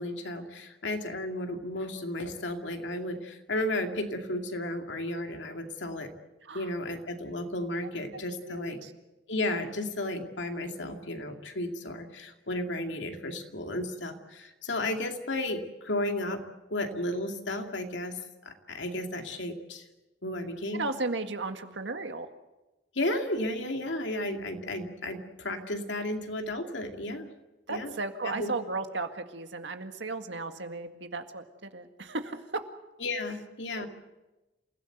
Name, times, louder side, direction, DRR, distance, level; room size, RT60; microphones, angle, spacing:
voice 1, 0.0-6.1 6.5-8.8 9.3-16.4 16.7-19.8 20.2-20.8 22.9-27.3 27.7-27.9 28.2-28.5 33.0-33.9, left 1 dB, 85° left, 4 dB, 2.5 m, -33 dB
voice 2, 8.1-8.9 20.7-22.3 27.7-32.4 33.8-33.9, right 3 dB, 80° right, 7 dB, 1.9 m, -35 dB
28.0 x 16.5 x 8.0 m, 1.1 s
head